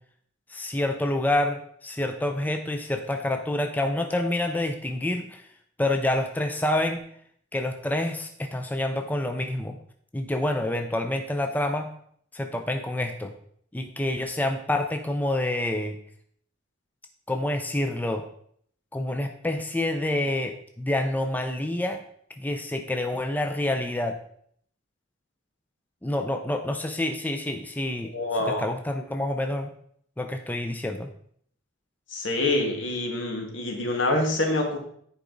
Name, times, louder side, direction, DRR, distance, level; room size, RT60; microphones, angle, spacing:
voice 1, 0.5-5.4 5.8-7.0 7.5-9.8 10.1-11.9 12.3-13.3 13.7-16.0 17.3-18.2 18.9-22.0 22.4-24.2 26.0-28.1 28.5-29.7 30.2-31.1, left 1 dB, 10° left, 5 dB, 0.5 m, -27 dB
voice 2, 28.1-28.6 32.1-34.8, left 2 dB, 75° left, 2 dB, 1.8 m, -26 dB
9.9 x 5.0 x 3.9 m, 0.64 s
head